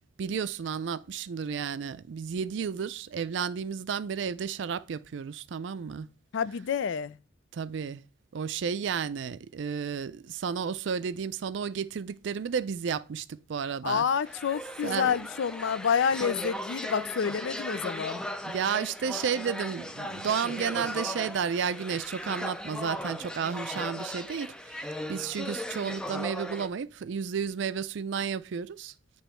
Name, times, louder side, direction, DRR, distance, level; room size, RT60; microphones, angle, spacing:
voice 1, 0.2-6.1 7.5-8.0 8.3-14.0 14.8-15.1 18.5-28.9, right 6 dB, 65° right, 0.4 m, -32 dB
voice 2, 6.3-7.2 13.8-18.2, left 7 dB, 70° left, 0.4 m, -28 dB
sound 1, 14.2-26.7, left 1 dB, 5° left, 0.3 m, -37 dB
8.9 x 3.0 x 4.3 m
head